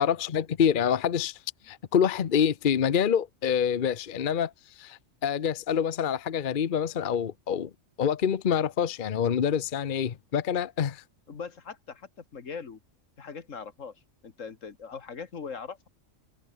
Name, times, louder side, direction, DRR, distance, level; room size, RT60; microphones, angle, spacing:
voice 1, 0.0-1.4 1.6-7.7 8.0-11.0, left 8 dB, 45° left, 0.9 m, -26 dB
voice 2, 11.3-12.8 13.2-14.0 14.2-15.9, left 5 dB, 80° left, 2.1 m, -40 dB
omnidirectional pair, 1.3 m